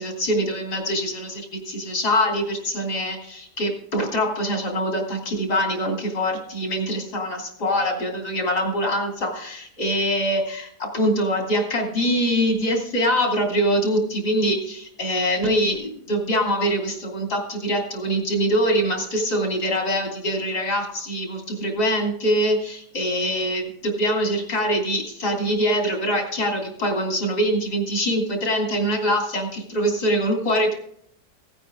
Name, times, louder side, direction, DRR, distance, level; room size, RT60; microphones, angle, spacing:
voice 1, 0.0-30.7, equal, 80° left, 0 dB, 3.6 m, -24 dB
17.0 x 9.1 x 3.6 m, 0.67 s
omnidirectional pair, 1.7 m